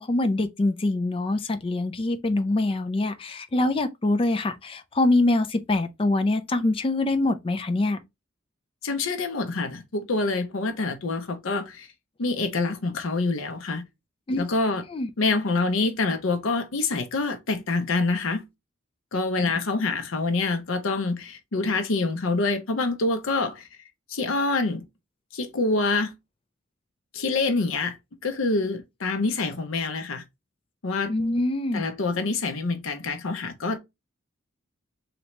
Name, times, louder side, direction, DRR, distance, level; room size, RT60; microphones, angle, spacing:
voice 1, 0.0-8.0 14.3-14.4 14.9-15.1 31.1-31.8, left 2 dB, 25° left, 0.4 m, -24 dB
voice 2, 8.8-11.9 12.2-13.8 14.4-14.8 15.2-18.4 19.1-23.7 24.1-24.8 25.3-26.1 27.1-28.0 28.2-30.2 30.8-31.1 31.7-33.8, left 3 dB, 75° left, 0.6 m, -26 dB
2.9 x 2.9 x 3.1 m
head